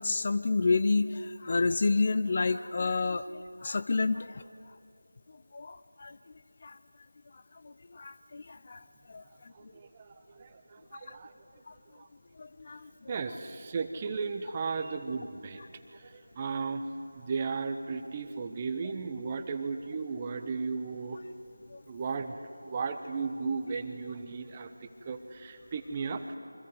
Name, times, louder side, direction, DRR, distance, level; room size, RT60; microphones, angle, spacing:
voice 1, 0.0-4.4 5.5-6.2 6.6-6.8 7.6-8.8 9.1-9.5 11.1-11.2 11.7-11.8 12.4-13.1 21.7-21.8, left 3 dB, 35° left, 12 dB, 0.5 m, -30 dB
voice 2, 9.5-11.3 11.9-12.1 13.1-15.6 15.9-16.8 17.1-21.2 21.9-26.4, right 4 dB, 20° right, 8 dB, 1.1 m, -35 dB
28.0 x 25.0 x 8.0 m, 2.6 s
figure-of-eight pair, 165°, 0 cm